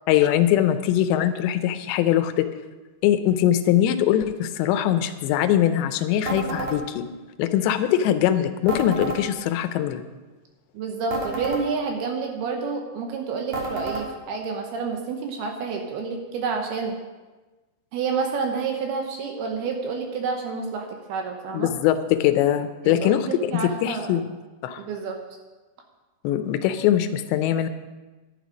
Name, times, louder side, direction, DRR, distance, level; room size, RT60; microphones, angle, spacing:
voice 1, 0.1-2.5 3.0-7.0 7.4-10.0 21.5-24.3 24.6-24.8 26.2-27.7, left 11 dB, 80° left, 9 dB, 2.7 m, -22 dB
sound 1, 6.3-6.8 8.7-9.2 11.1-11.6 13.5-14.1, right 2 dB, 55° right, 1.9 m, -29 dB
voice 2, 10.7-16.9 17.9-21.7 22.8-24.2 24.8-25.2, right 5 dB, 75° right, 3 dB, 2.4 m, -29 dB
11.0 x 10.0 x 5.1 m, 1.2 s
omnidirectional pair, 5.5 m